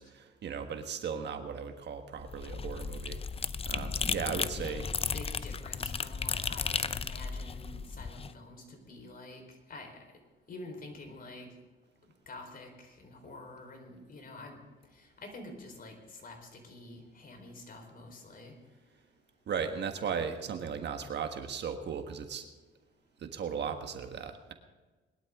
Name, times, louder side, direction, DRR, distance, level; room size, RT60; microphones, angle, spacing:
voice 1, 0.0-3.2 3.6-4.9 19.5-22.5 23.2-24.5, right 6 dB, 60° right, 6 dB, 1.6 m, -36 dB
sound 1, 2.2-8.3, left 5 dB, 30° left, 0.6 m, -35 dB
voice 2, 4.2-4.7 5.1-9.9 10.5-11.5 12.3-14.6 14.9-18.5, left 2 dB, 45° left, 4 dB, 4.3 m, -48 dB
21.0 x 12.0 x 3.7 m, 1.3 s
cardioid pair, 90°, 20 cm